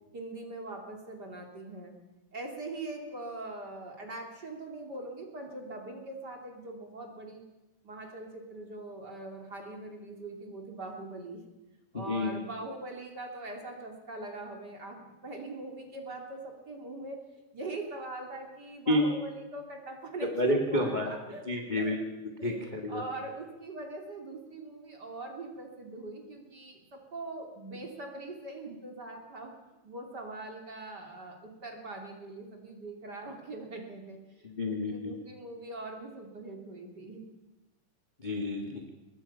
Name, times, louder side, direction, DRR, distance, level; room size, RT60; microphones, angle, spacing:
voice 1, 0.1-1.9 2.3-7.4 7.8-11.4 11.9-17.2 17.5-21.4 21.8-22.0 22.4-29.5 29.8-37.2, right 2 dB, 30° right, 2 dB, 3.0 m, -42 dB
voice 2, 11.9-12.3 18.9-19.0 20.4-21.1 21.4-23.0 34.4-35.1 38.2-38.8, left 1 dB, 20° left, 2 dB, 1.2 m, -30 dB
24.5 x 20.5 x 5.7 m, 1.0 s
omnidirectional pair, 4.1 m